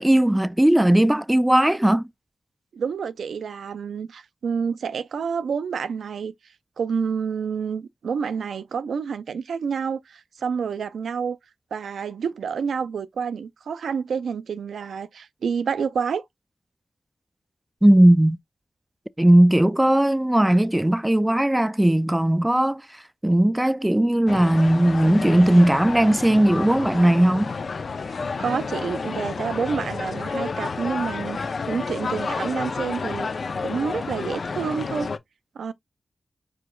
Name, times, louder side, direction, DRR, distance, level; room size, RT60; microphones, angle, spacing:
voice 1, 0.0-2.1 17.8-18.4 19.2-22.8 23.2-27.5, right 1 dB, 10° right, 0.3 m, -18 dB
voice 2, 2.7-6.3 6.8-11.4 11.7-16.2 28.1-33.3 33.6-35.1 35.6-35.7, right 6 dB, 90° right, 0.4 m, -28 dB
sound 1, 24.3-35.2, left 4 dB, 65° left, 0.6 m, -30 dB
4.9 x 4.6 x 2.3 m
cardioid pair, 50°, 0 cm